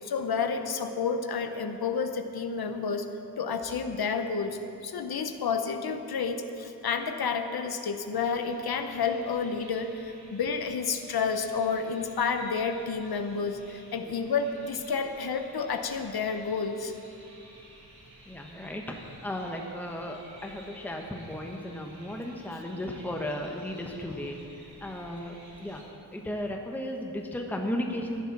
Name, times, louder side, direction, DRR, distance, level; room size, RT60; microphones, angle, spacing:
voice 1, 0.0-3.1 3.4-16.9, left 5 dB, 65° left, 7 dB, 0.9 m, -30 dB
sound 1, 8.1-25.8, right 1 dB, 70° right, 2.9 m, -53 dB
voice 2, 18.3-25.8 26.1-28.2, left 1 dB, 5° left, 1 dB, 0.9 m, -35 dB
14.5 x 10.0 x 5.9 m, 2.9 s
wide cardioid pair, 165°, 39 cm